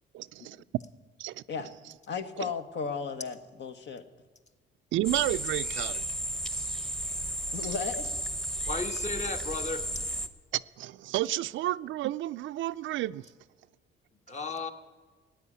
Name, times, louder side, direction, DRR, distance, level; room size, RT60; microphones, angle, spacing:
voice 1, 0.1-0.6 1.2-1.4 4.9-6.0 10.5-13.2, right 15 dB, 75° right, 0.4 m, -31 dB
voice 2, 2.1-4.0 7.5-8.1, left 5 dB, 65° left, 1.2 m, -35 dB
sound 1, 5.0-10.3, right 1 dB, 5° left, 0.9 m, -33 dB
voice 3, 8.7-9.8 14.3-14.7, left 3 dB, 35° left, 1.4 m, -34 dB
14.5 x 9.1 x 9.8 m
cardioid pair, 90°, 20 cm